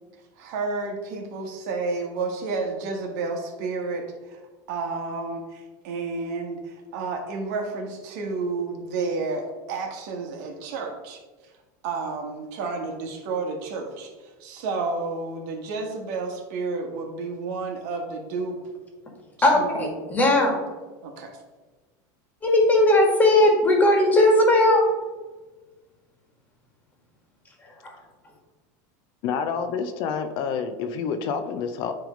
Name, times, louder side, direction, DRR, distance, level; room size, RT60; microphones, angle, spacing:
voice 1, 0.4-4.4 4.7-11.2 11.8-18.6 19.5-19.9 21.0-21.4, right 3 dB, 65° right, 2 dB, 1.6 m, -31 dB
voice 2, 19.4-20.6 22.4-24.8 27.6-28.0, left 1 dB, 15° left, 1 dB, 1.8 m, -18 dB
voice 3, 29.2-31.9, left 6 dB, 50° left, 8 dB, 0.6 m, -28 dB
9.3 x 3.3 x 5.1 m, 1.3 s
supercardioid pair, 145°, 10 cm